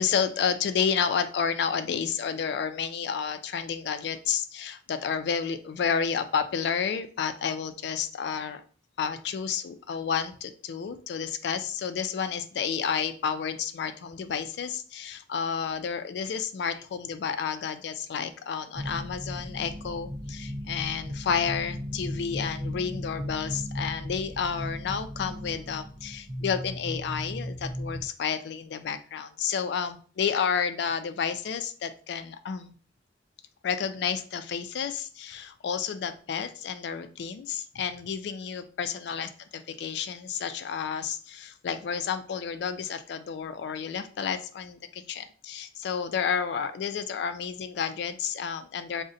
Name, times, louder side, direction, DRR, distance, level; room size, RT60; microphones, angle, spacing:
voice 1, 0.0-8.6 9.0-32.7 33.6-39.3 39.8-49.0, left 7 dB, 65° left, 10 dB, 0.3 m, -31 dB
sound 1, 18.7-28.1, equal, 60° right, 0.8 m, -36 dB
3.7 x 2.1 x 2.6 m, 0.40 s
head